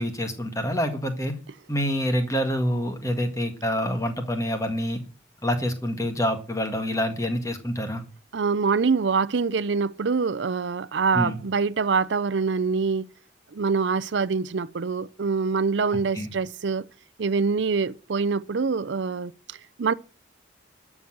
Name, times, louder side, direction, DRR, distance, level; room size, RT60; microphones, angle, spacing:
voice 1, 0.0-1.3 1.7-5.0 5.4-8.0 11.1-11.4 16.1-16.3, equal, 15° left, 1.7 m, -26 dB
voice 2, 8.3-13.1 13.5-16.9 17.2-19.9, right 5 dB, 70° right, 0.5 m, -25 dB
12.5 x 6.2 x 7.6 m
head